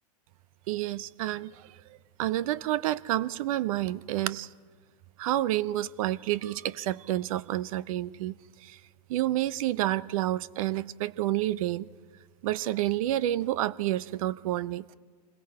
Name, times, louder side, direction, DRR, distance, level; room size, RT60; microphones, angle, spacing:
voice 1, 0.7-1.5 2.2-4.5 5.2-8.4 8.6-8.8 9.1-11.9 12.4-14.9, right 14 dB, 55° right, 0.6 m, -29 dB
27.0 x 21.0 x 4.8 m
hypercardioid pair, 110°, 21 cm